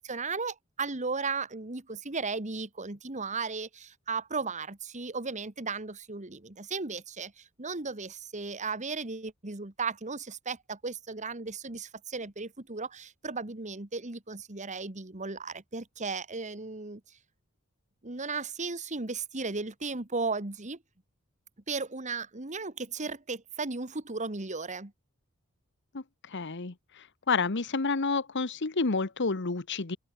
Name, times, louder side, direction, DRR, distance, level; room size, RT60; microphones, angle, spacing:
voice 1, 0.0-17.0 18.0-20.8 21.7-24.9, right 4 dB, 35° right, 1.8 m, -35 dB
voice 2, 25.9-30.0, left 4 dB, 55° left, 1.1 m, -30 dB
open air
head